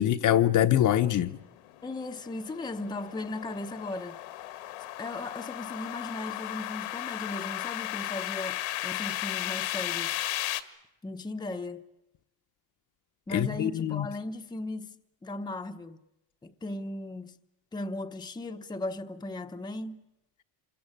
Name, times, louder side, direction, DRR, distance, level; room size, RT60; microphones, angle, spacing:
voice 1, 0.0-1.4 13.3-14.1, left 11 dB, 40° left, 1.0 m, -24 dB
sound 1, 1.5-10.6, left 16 dB, 85° left, 2.0 m, -35 dB
voice 2, 1.8-4.2 5.0-10.2 11.0-11.8 13.3-14.9 15.2-16.0 16.4-17.4 17.7-20.0, left 2 dB, 10° left, 0.9 m, -37 dB
27.5 x 22.0 x 8.8 m
cardioid pair, 150°, 49 cm